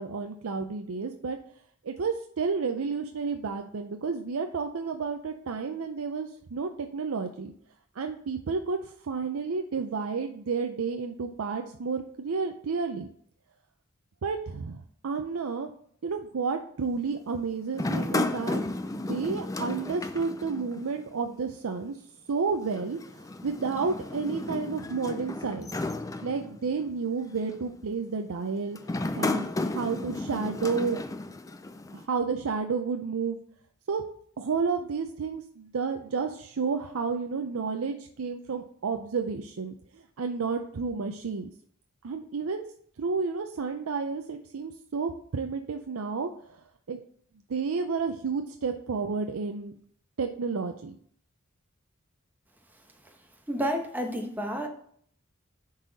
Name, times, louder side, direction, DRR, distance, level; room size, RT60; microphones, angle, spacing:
voice 1, 0.0-1.4 1.8-7.5 8.0-13.1 14.2-15.7 16.0-18.6 18.9-21.9 22.3-25.7 26.2-28.8 29.1-31.0 31.9-33.4 33.9-34.0 34.4-41.5 42.0-42.6 43.0-46.6 46.9-47.0 47.5-49.7 50.2-51.0, right 5 dB, 85° right, 5 dB, 0.5 m, -31 dB
sound 1, 17.7-21.1 21.4-21.5 22.7-26.9 27.5-27.8 28.8-32.1, left 2 dB, 15° left, 0.4 m, -33 dB
voice 2, 53.5-54.7, equal, 10° right, 3 dB, 1.0 m, -30 dB
10.0 x 4.0 x 4.0 m, 0.62 s
head